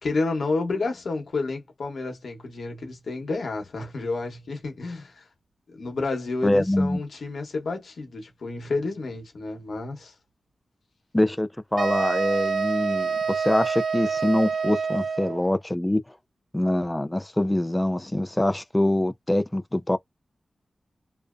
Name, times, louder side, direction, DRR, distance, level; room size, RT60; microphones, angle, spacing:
voice 1, 0.0-5.3 5.7-10.1, left 3 dB, 80° left, 1.0 m, -30 dB
voice 2, 6.4-7.0 11.1-16.0 16.5-20.0, left 1 dB, 15° left, 0.3 m, -24 dB
sound 1, 11.8-15.4, right 5 dB, 75° right, 0.4 m, -27 dB
2.5 x 2.0 x 2.4 m
cardioid pair, 55°, 0 cm